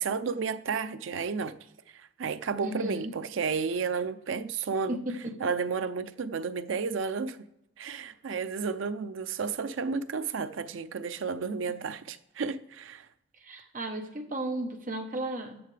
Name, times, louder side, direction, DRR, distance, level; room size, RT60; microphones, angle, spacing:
voice 1, 0.0-1.5 1.9-5.0 5.4-7.5 7.8-13.1, right 5 dB, 80° right, 0.5 m, -32 dB
voice 2, 2.6-3.1 4.9-5.3 13.4-15.6, right 1 dB, 40° right, 1.0 m, -34 dB
13.5 x 6.6 x 3.3 m
head